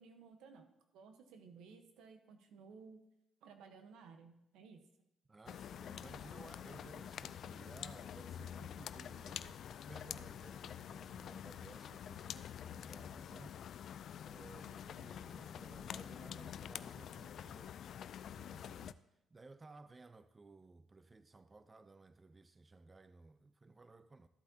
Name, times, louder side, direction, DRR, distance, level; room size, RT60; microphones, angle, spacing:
voice 1, 0.0-3.0 3.4-4.8, right 5 dB, 90° right, 1.0 m, -57 dB
voice 2, 5.3-17.7 18.2-19.0 19.3-24.3, right 3 dB, 25° right, 0.4 m, -58 dB
sound 1, 5.5-18.9, left 9 dB, 65° left, 0.3 m, -47 dB
13.0 x 8.2 x 2.8 m
cardioid pair, 90°, 0 cm